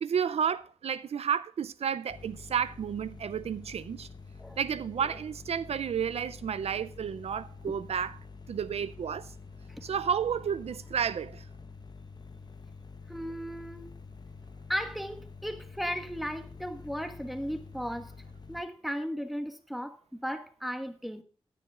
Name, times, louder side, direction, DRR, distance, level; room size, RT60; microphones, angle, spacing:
voice 1, 0.0-4.1 4.6-8.2 8.5-9.3 9.8-11.4, right 7 dB, 80° right, 0.4 m, -31 dB
sound 1, 2.1-18.6, left 4 dB, 40° left, 0.9 m, -48 dB
voice 2, 13.1-13.9 14.7-18.1 18.5-21.2, equal, ahead, 1.4 m, -36 dB
16.5 x 10.0 x 2.4 m
cardioid pair, 65°, 10 cm